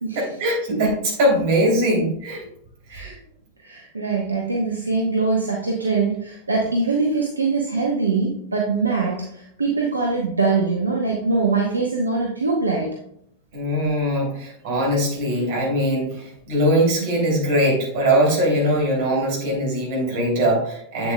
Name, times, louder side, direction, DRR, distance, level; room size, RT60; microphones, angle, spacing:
voice 1, 0.1-2.5 2.9-3.1 13.5-21.1, right 1 dB, 50° right, -2 dB, 3.0 m, -21 dB
voice 2, 3.6-13.0, right 4 dB, 80° right, -1 dB, 0.9 m, -23 dB
8.0 x 7.1 x 2.2 m, 0.69 s
figure-of-eight pair, 90°, 0 cm